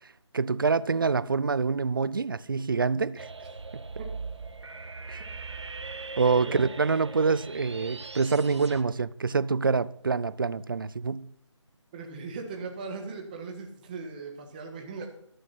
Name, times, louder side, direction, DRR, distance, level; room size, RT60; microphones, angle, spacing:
voice 1, 0.3-3.3 3.7-3.8 5.1-5.2 6.2-11.3, right 4 dB, 45° right, 0.5 m, -26 dB
sound 1, 3.2-8.8, right 4 dB, 65° right, 1.5 m, -40 dB
voice 2, 11.9-15.1, right 4 dB, 15° right, 1.6 m, -38 dB
13.0 x 12.0 x 4.2 m
figure-of-eight pair, 165°, 16 cm